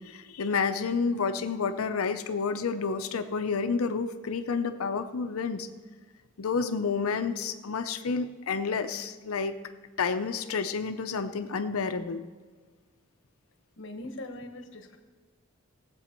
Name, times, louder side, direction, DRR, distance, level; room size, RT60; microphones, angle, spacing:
voice 1, 0.0-5.7 6.4-9.5 10.0-12.2, left 5 dB, 85° left, 9 dB, 0.6 m, -30 dB
voice 2, 13.8-15.0, left 1 dB, 60° left, 6 dB, 1.1 m, -41 dB
17.5 x 7.8 x 4.4 m, 1.5 s
head